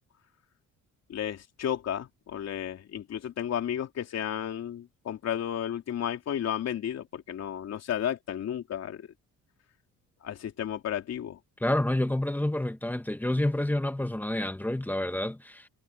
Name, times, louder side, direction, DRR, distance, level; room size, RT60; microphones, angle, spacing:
voice 1, 1.1-9.1 10.2-11.4, left 10 dB, 55° left, 3.3 m, -33 dB
voice 2, 11.6-15.7, left 1 dB, 5° left, 1.5 m, -28 dB
cardioid pair, 125°, 31 cm